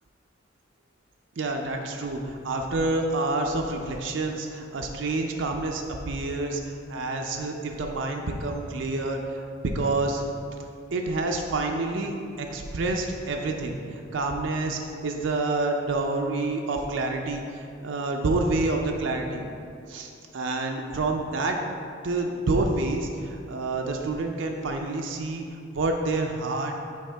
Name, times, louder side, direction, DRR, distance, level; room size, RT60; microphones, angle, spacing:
voice 1, 1.4-2.2 2.4-10.2 10.9-19.4 19.9-21.6 22.0-25.4 25.7-26.7, right 2 dB, 70° right, 2 dB, 0.5 m, -28 dB
6.3 x 4.8 x 3.4 m, 2.4 s
head